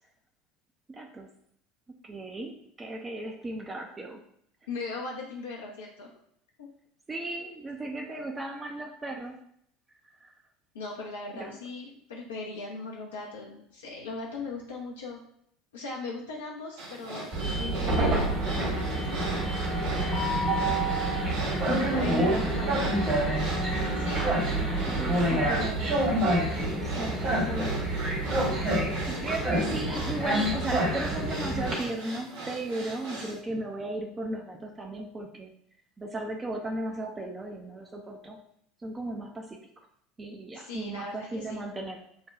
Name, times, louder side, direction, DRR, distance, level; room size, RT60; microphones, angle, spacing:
voice 1, 0.9-1.3 2.0-4.2 7.1-9.4 10.2-10.3 11.4-11.6 21.7-23.0 24.9-26.2 26.6-27.9 29.1-35.5 36.0-38.4 38.8-39.6 40.2-42.3, right 2 dB, 20° right, 2 dB, 0.5 m, -36 dB
voice 2, 4.7-6.1 6.6-6.7 10.7-15.2 15.7-19.1 21.9-22.2 22.6-22.7 23.9-24.2 29.6-29.8 40.5-41.6, left 3 dB, 75° left, -2 dB, 0.6 m, -39 dB
sound 1, 16.8-33.4, right 2 dB, 70° right, 1.0 m, -39 dB
Train, 17.3-31.7, right 1 dB, 45° right, 1.4 m, -27 dB
6.4 x 2.2 x 2.4 m, 0.69 s
figure-of-eight pair, 70°, 0 cm